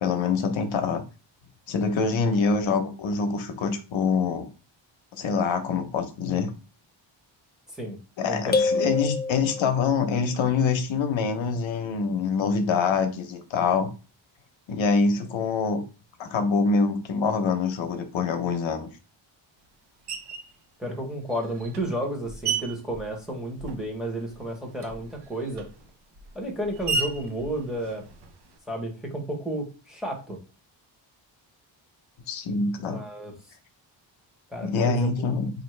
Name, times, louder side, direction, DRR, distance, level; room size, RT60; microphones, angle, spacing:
voice 1, 0.0-1.0 1.7-4.5 5.1-6.5 8.2-13.9 14.7-15.8 16.2-18.9 32.3-33.0 34.6-35.5, left 5 dB, 75° left, 7 dB, 0.8 m, -25 dB
voice 2, 8.3-8.6 20.8-25.7 26.3-28.0 28.7-30.4 32.8-33.3 34.5-35.1, right 1 dB, ahead, 0 dB, 1.0 m, -32 dB
sound 1, 8.5-10.0, left 3 dB, 25° left, 0.4 m, -26 dB
Screech, 20.1-20.6 21.3-24.0 24.3-28.6, right 4 dB, 60° right, 0.7 m, -35 dB
5.1 x 2.5 x 3.2 m, 0.33 s
wide cardioid pair, 155°, 46 cm